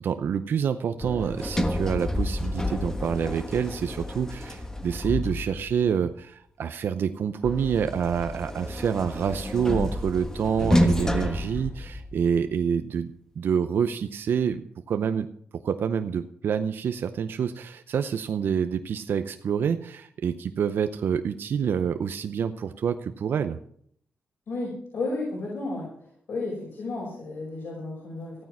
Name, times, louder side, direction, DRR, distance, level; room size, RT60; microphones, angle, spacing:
voice 1, 0.0-14.6 14.9-15.3 15.6-23.6, right 7 dB, 75° right, 9 dB, 0.7 m, -27 dB
Sliding door, 1.0-5.8 7.4-12.4, left 1 dB, 15° left, 1.5 m, -29 dB
voice 2, 24.5-25.9 26.3-28.3, left 2 dB, 75° left, -3 dB, 5.2 m, -32 dB
14.5 x 9.4 x 6.0 m, 0.65 s
cardioid pair, 80°, 4 cm